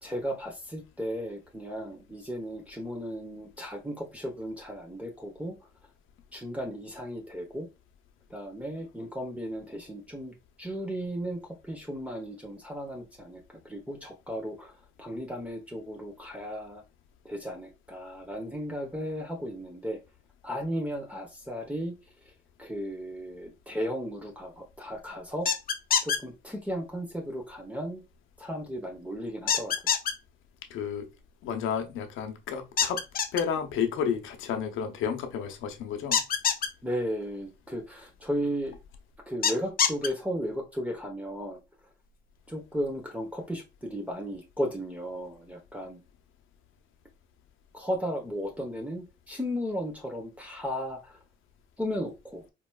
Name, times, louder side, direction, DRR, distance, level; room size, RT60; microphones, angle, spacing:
voice 1, 0.0-5.6 6.3-7.7 8.3-14.7 15.0-16.8 17.2-20.0 20.4-21.9 22.6-25.5 26.0-28.0 28.4-30.0 36.8-38.8 39.3-41.6 42.5-46.0 47.7-51.2 51.8-52.4, equal, 5° right, 1.0 m, -35 dB
sound 1, 25.5-26.2 29.5-30.1 32.8-33.4 36.1-36.7 39.4-40.1, left 7 dB, 45° left, 0.6 m, -24 dB
voice 2, 30.7-31.1 31.4-33.0 33.3-36.2, left 7 dB, 85° left, 0.8 m, -31 dB
4.4 x 2.9 x 2.3 m
cardioid pair, 90°, 20 cm